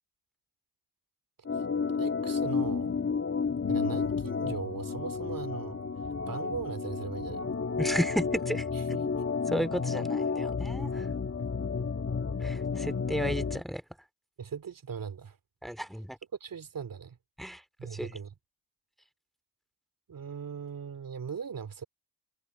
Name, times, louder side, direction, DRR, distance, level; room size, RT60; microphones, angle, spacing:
Organ, 1.5-13.6, left 5 dB, 30° left, 1.9 m, -31 dB
voice 1, 2.0-3.0 3.7-5.8 6.3-7.6 8.7-9.2 14.4-15.4 16.4-17.2 17.8-18.3 20.1-21.8, right 6 dB, 45° right, 2.7 m, -39 dB
Bass guitar, 3.6-9.9, left 8 dB, 55° left, 6.7 m, -46 dB
voice 2, 7.8-8.7 9.0-9.1 9.5-11.1 12.4-13.8 15.6-16.2 17.4-17.6 17.9-18.2, equal, ahead, 2.6 m, -33 dB
hypercardioid pair, 45°, 46 cm